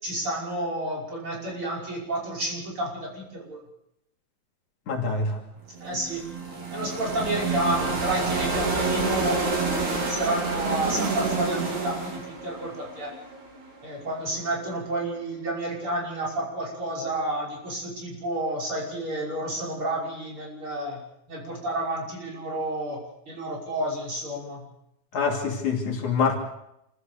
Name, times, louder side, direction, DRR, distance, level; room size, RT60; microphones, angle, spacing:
voice 1, 0.0-3.6 5.8-6.3 6.7-9.4 9.8-13.1 13.8-21.0 21.3-24.7, right 1 dB, 45° right, 6.7 m, -30 dB
voice 2, 4.9-5.4 25.1-26.4, left 5 dB, 75° left, 4.4 m, -25 dB
sound 1, 5.7-13.8, right 4 dB, 75° right, 5.1 m, -28 dB
27.0 x 15.5 x 6.8 m
omnidirectional pair, 3.4 m